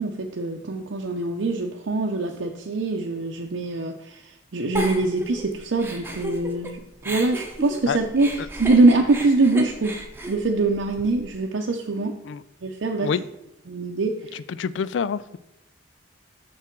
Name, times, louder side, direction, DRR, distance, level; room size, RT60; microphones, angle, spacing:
voice 1, 0.0-10.0 10.3-12.2 12.6-13.1 13.7-14.4, right 3 dB, 90° right, 0.6 m, -23 dB
Giggle, 4.8-6.7 7.0-11.3, right 1 dB, 10° right, 1.0 m, -32 dB
voice 2, 14.6-15.4, left 6 dB, 75° left, 0.3 m, -26 dB
6.2 x 5.9 x 4.5 m
head